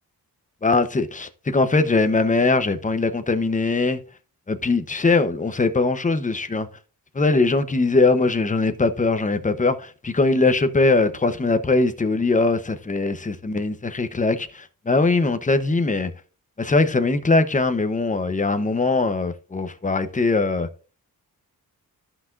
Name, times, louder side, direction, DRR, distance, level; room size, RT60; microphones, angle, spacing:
voice 1, 0.6-4.0 4.5-6.7 7.1-16.1 16.6-20.7, left 3 dB, 20° left, 0.9 m, -21 dB
13.5 x 5.9 x 2.5 m
cardioid pair, 95°, 36 cm